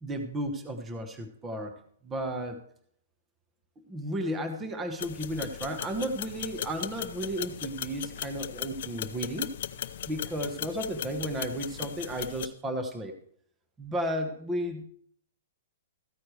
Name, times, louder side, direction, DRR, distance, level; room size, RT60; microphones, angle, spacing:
voice 1, 0.0-1.7 2.0-2.6 3.9-9.5 10.1-13.1 13.8-14.8, right 1 dB, 10° right, 5 dB, 1.1 m, -33 dB
sound 1, 5.0-12.5, left 10 dB, 55° left, 0.7 m, -38 dB
14.5 x 9.6 x 3.2 m, 0.64 s
hypercardioid pair, 170°, 0 cm